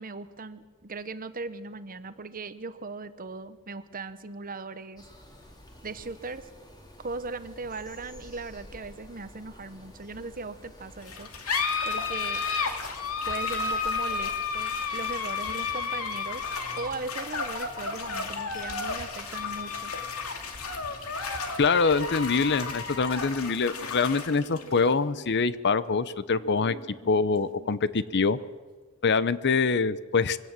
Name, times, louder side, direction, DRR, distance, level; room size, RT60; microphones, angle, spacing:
voice 1, 0.0-5.0 5.8-6.5 7.0-11.3 11.6-12.4 13.3-16.4 16.8-19.9, right 3 dB, 40° right, 12 dB, 1.1 m, -38 dB
sound 1, 5.0-23.3, left 1 dB, 20° left, 2.9 m, -50 dB
sound 2, 11.0-28.0, left 5 dB, 80° left, 2.5 m, -33 dB
voice 2, 21.6-26.8 27.1-28.4 29.0-30.4, left 4 dB, 50° left, 16 dB, 0.7 m, -24 dB
23.0 x 17.0 x 7.5 m, 1.4 s
head